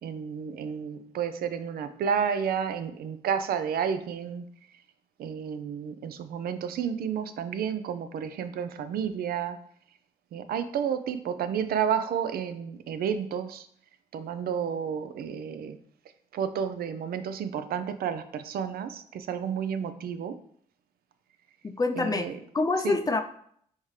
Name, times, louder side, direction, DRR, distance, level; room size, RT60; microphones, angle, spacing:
voice 1, 0.0-4.5 5.2-9.6 10.3-13.7 14.1-15.8 16.3-20.3 22.0-22.4 22.8-23.0, right 7 dB, 70° right, 11 dB, 0.5 m, -31 dB
voice 2, 21.6-23.2, left 3 dB, 25° left, 7 dB, 0.5 m, -27 dB
4.1 x 3.6 x 3.2 m, 0.64 s
supercardioid pair, 60°, 16 cm